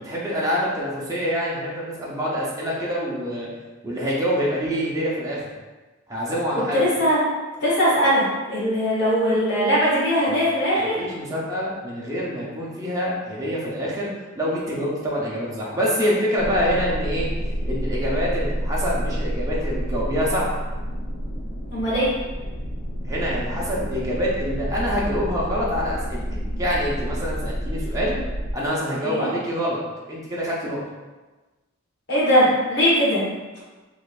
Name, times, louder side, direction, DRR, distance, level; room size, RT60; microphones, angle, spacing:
voice 1, 0.0-3.5 3.8-5.4 6.1-6.8 10.8-17.3 17.7-20.5 23.0-26.2 26.6-28.2 28.5-29.8 30.1-30.8, equal, 15° right, -6 dB, 0.6 m, -26 dB
voice 2, 6.7-7.2 7.6-11.0 21.7-22.1 29.0-29.3 32.1-33.3, equal, 55° left, -7 dB, 1.3 m, -20 dB
sound 1, 16.4-28.5, equal, 90° left, 0.7 m, -29 dB
3.8 x 3.1 x 2.4 m, 1.2 s
head